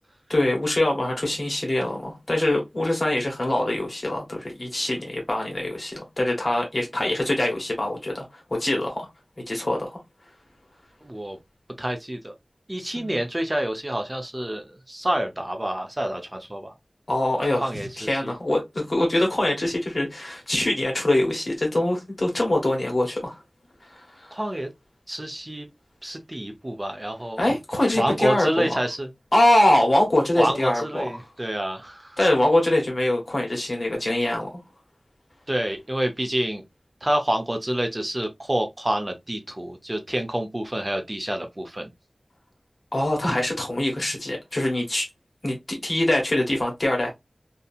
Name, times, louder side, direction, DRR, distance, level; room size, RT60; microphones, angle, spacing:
voice 1, 0.3-8.2 8.5-9.1 9.5-10.0 12.9-13.1 17.1-17.7 18.0-23.4 23.8-24.4 27.4-28.7 29.3-31.0 32.2-34.6 42.9-45.1 45.4-47.1, left 1 dB, 55° left, 1.3 m, -23 dB
voice 2, 11.0-11.4 11.8-12.3 12.7-16.7 17.6-18.3 24.3-24.7 25.1-25.7 26.0-27.4 27.9-29.1 30.4-32.2 35.5-36.6 37.0-41.9, right 1 dB, 30° right, 0.6 m, -28 dB
2.7 x 2.7 x 2.3 m
wide cardioid pair, 60°, 0 cm